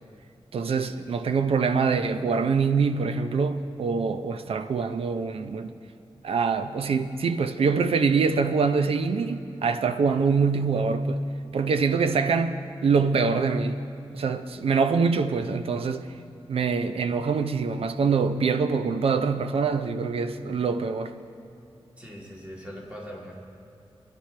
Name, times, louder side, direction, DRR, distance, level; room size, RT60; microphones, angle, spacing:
voice 1, 0.5-5.7 6.2-11.2 11.5-13.8 14.1-16.1 16.5-21.1, right 5 dB, 80° right, 0.6 m, -24 dB
voice 2, 22.0-23.4, equal, 15° right, 2.1 m, -41 dB
22.0 x 11.5 x 3.3 m
wide cardioid pair, 175°, 10 cm